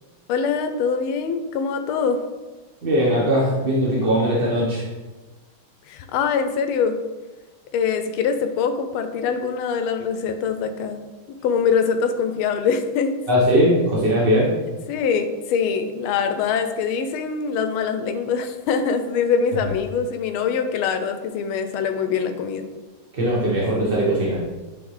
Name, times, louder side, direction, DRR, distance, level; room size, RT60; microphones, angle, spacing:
voice 1, 0.3-2.2 5.9-7.0 7.7-11.0 11.4-13.2 14.9-22.6, left 6 dB, 85° left, 8 dB, 1.4 m, -23 dB
voice 2, 2.8-4.9 13.3-14.5 19.6-19.7 23.1-24.4, equal, 35° right, -7 dB, 0.9 m, -20 dB
9.1 x 3.5 x 3.1 m, 1.2 s
omnidirectional pair, 2.3 m